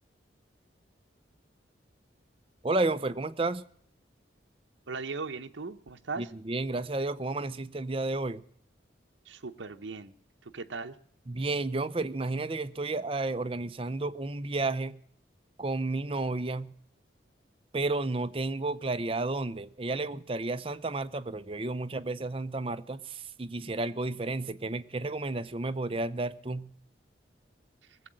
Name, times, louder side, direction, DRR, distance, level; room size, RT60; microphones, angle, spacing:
voice 1, 2.6-3.6 6.2-8.4 11.3-15.0 15.6-16.7 17.7-26.7, right 2 dB, 30° right, 0.6 m, -32 dB
voice 2, 4.9-6.3 9.3-10.1 10.5-11.0, right 4 dB, 75° right, 0.8 m, -38 dB
20.0 x 7.7 x 7.5 m
head